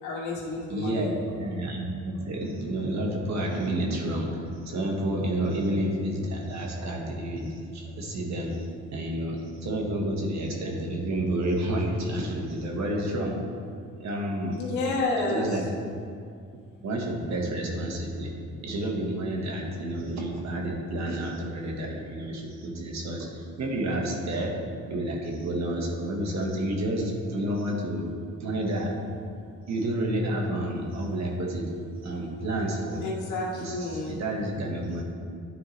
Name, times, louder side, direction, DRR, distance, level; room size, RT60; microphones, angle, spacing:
voice 1, 0.0-1.1 14.6-15.6 33.0-34.2, left 3 dB, 75° left, -3 dB, 1.7 m, -30 dB
voice 2, 0.7-4.3 4.6-8.6 8.9-13.4 14.0-14.7 14.9-15.7 16.8-18.3 18.6-24.5 24.9-28.0 28.4-28.9 29.7-31.7 32.0-33.1 33.5-35.0, right 1 dB, 65° right, 0 dB, 1.5 m, -30 dB
11.5 x 4.7 x 3.2 m, 2.3 s
cardioid pair, 90°, 30 cm